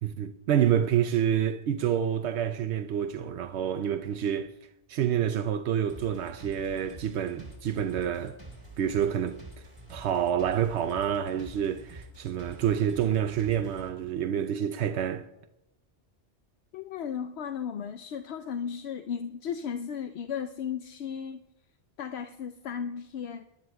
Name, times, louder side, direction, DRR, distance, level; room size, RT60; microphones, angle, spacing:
voice 1, 0.0-4.5 4.9-8.4 8.8-9.4 9.9-15.3, right 9 dB, 80° right, 0.9 m, -28 dB
sound 1, 5.9-13.9, right 2 dB, 25° right, 3.5 m, -48 dB
voice 2, 16.7-21.4 22.0-23.4, left 7 dB, 75° left, 0.8 m, -35 dB
23.5 x 11.5 x 2.3 m
omnidirectional pair, 1.1 m